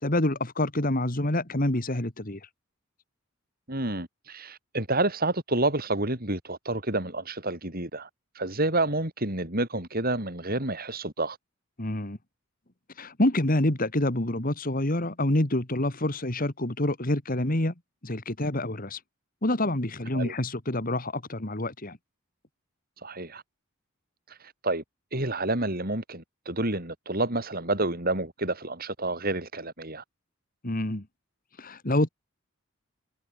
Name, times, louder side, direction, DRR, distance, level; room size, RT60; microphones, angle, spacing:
voice 1, 0.0-2.4 11.8-12.2 13.0-17.7 18.0-19.0 19.4-22.0 30.6-31.1 31.6-32.1, left 1 dB, 40° left, 2.3 m, -27 dB
voice 2, 3.7-8.1 8.3-11.4 20.1-20.3 23.0-23.4 24.3-24.8 25.1-30.0, right 2 dB, 45° right, 6.2 m, -29 dB
head